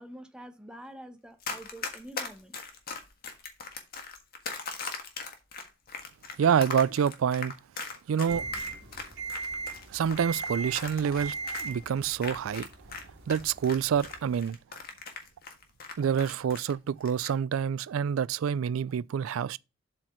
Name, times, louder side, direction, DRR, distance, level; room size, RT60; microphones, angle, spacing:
voice 1, 0.0-2.6, right 1 dB, 5° right, 1.0 m, -46 dB
Run, 1.4-13.0 13.3-16.7 17.0-17.3, left 5 dB, 50° left, 1.6 m, -39 dB
voice 2, 6.4-7.5 8.1-8.4 9.9-13.0 13.3-14.6 16.0-19.6, right 7 dB, 80° right, 0.3 m, -27 dB
sound 1, 8.3-14.3, right 4 dB, 60° right, 2.2 m, -39 dB
7.7 x 4.5 x 4.4 m
head